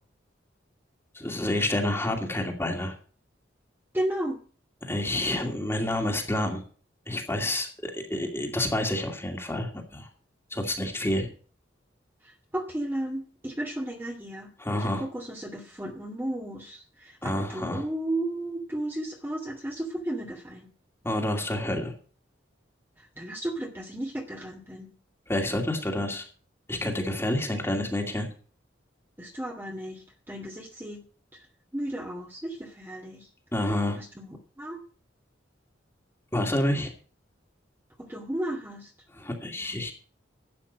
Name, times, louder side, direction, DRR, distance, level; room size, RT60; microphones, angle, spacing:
voice 1, 1.1-2.9 4.8-6.6 7.1-10.1 10.5-11.3 14.6-15.0 17.2-17.8 21.0-21.9 25.3-26.2 26.7-28.3 33.5-34.0 36.3-36.9 39.1-39.9, left 1 dB, 15° left, 2 dB, 2.4 m, -28 dB
voice 2, 3.9-4.4 12.2-14.5 14.8-20.7 23.0-24.9 29.2-31.0 31.3-31.4 31.7-33.3 34.0-34.8 38.0-38.9, right 1 dB, 10° right, 0 dB, 2.0 m, -34 dB
13.0 x 8.8 x 5.2 m, 0.41 s
head